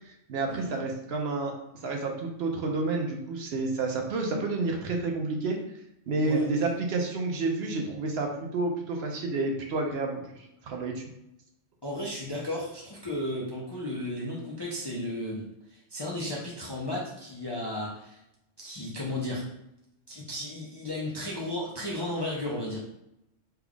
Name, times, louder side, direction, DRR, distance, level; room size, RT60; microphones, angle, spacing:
voice 1, 0.1-1.5 1.8-5.6 6.1-11.0, right 3 dB, 65° right, 2 dB, 0.8 m, -30 dB
voice 2, 11.8-15.4 15.7-18.2 18.6-19.5 20.1-22.8, left 1 dB, 35° left, -5 dB, 0.4 m, -34 dB
3.3 x 2.3 x 3.5 m, 0.83 s
omnidirectional pair, 1.2 m